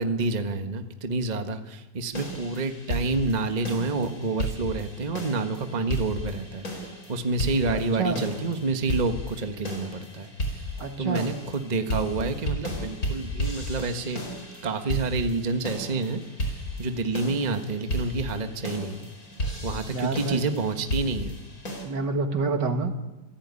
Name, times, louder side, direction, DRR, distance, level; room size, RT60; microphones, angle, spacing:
voice 1, 0.0-14.2 14.6-19.1 19.6-21.4, right 3 dB, 25° right, 7 dB, 1.4 m, -28 dB
sound 1, 2.1-21.8, equal, 45° left, 5.1 m, -34 dB
voice 2, 7.7-8.2 10.8-11.3 19.9-20.4 21.8-22.9, right 4 dB, 60° right, 6 dB, 2.5 m, -28 dB
28.5 x 16.5 x 9.8 m, 1.1 s
omnidirectional pair, 2.1 m